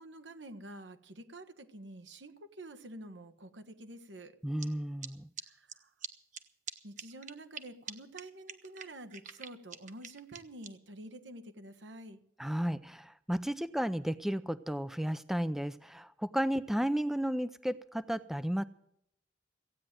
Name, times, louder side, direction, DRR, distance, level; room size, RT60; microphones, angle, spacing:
voice 1, 0.0-4.4 5.4-5.9 6.8-12.2, right 1 dB, 85° right, 9 dB, 1.4 m, -48 dB
voice 2, 4.4-5.3 12.4-18.6, equal, ahead, 14 dB, 0.4 m, -33 dB
sound 1, 4.6-4.7 5.0-5.1 5.4-5.5 5.7-5.8 6.0-6.1 6.3-6.4 6.7-6.8 7.0-7.6 7.9-8.0 8.2-8.3 8.5-10.7, right 7 dB, 45° right, 1.2 m, -43 dB
16.0 x 9.1 x 7.6 m, 0.73 s
head